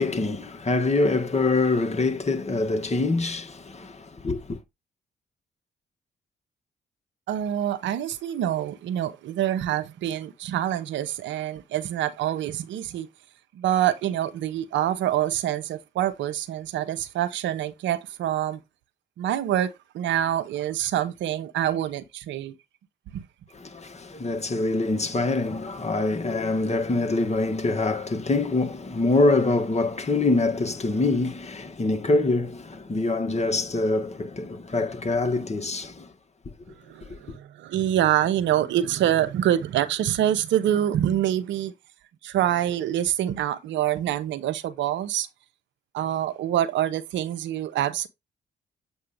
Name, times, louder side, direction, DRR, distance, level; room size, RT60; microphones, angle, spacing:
voice 1, 0.0-4.6 23.5-36.1 37.0-37.2, left 2 dB, 35° left, 1.8 m, -25 dB
voice 2, 7.3-13.1 13.5-18.6 19.2-22.5 23.1-23.2 36.8-41.7 42.2-45.3 45.9-48.1, right 11 dB, 80° right, 0.8 m, -26 dB
7.9 x 2.7 x 5.1 m
supercardioid pair, 50°, 19 cm